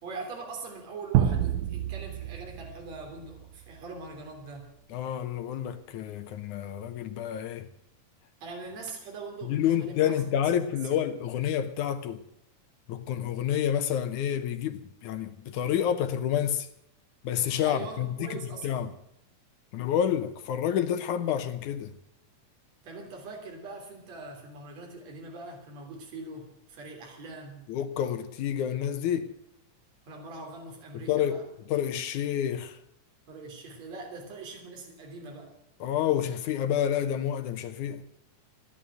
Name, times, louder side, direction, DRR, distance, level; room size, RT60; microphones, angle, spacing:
voice 1, 0.0-4.7 8.4-10.2 10.5-10.7 17.6-18.8 22.8-27.7 30.1-31.4 33.3-35.5, right 3 dB, 55° right, 4.4 m, -42 dB
sound 1, 1.1-3.7, right 10 dB, 85° right, 2.5 m, -28 dB
voice 2, 4.9-7.7 9.5-12.2 12.9-16.7 17.2-18.9 19.7-21.9 27.7-29.3 30.9-31.4 31.7-32.8 35.8-38.0, left 9 dB, 75° left, 2.2 m, -29 dB
16.5 x 11.5 x 7.7 m
omnidirectional pair, 3.8 m